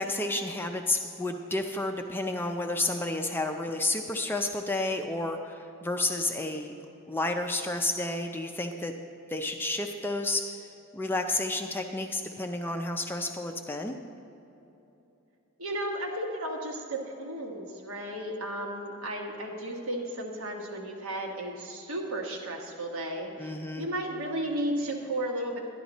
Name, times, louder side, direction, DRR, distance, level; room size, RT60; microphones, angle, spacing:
voice 1, 0.0-6.7 7.1-8.9 9.3-10.5 10.9-13.9 23.4-23.9, left 2 dB, 10° left, 4 dB, 0.4 m, -31 dB
voice 2, 15.6-23.5 23.8-25.6, right 1 dB, 75° right, 1 dB, 1.4 m, -34 dB
11.0 x 11.0 x 4.0 m, 2.9 s
head